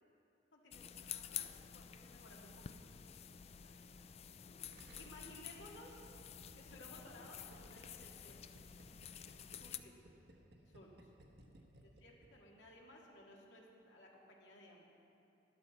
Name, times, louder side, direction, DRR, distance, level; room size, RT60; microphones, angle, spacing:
voice 1, 0.5-2.6 3.6-3.8 4.9-6.0 6.5-8.6 9.6-10.0 10.7-11.1 11.8-14.9, left 1 dB, 85° left, -2 dB, 2.0 m, -58 dB
sound 1, 0.7-9.8, left 9 dB, 35° left, 0.3 m, -50 dB
Gurgling, 4.7-12.3 12.5-12.6, right 1 dB, 60° right, 1.1 m, -61 dB
13.0 x 11.5 x 4.2 m, 3.0 s
head